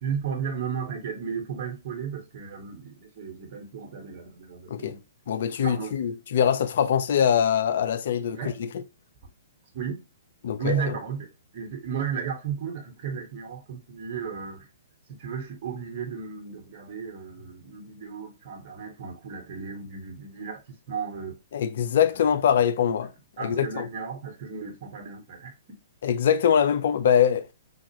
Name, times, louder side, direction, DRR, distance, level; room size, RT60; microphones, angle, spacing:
voice 1, 0.0-5.0 5.6-5.9 8.3-8.6 9.7-10.0 10.6-11.3 11.5-14.7 15.1-21.4 22.1-22.2 23.4-25.5, right 7 dB, 45° right, 1.2 m, -34 dB
voice 2, 5.3-8.8 10.4-11.0 21.5-23.1 23.4-23.9 26.0-27.5, left 8 dB, 60° left, 0.4 m, -23 dB
3.8 x 2.4 x 3.0 m
figure-of-eight pair, 120°, 0 cm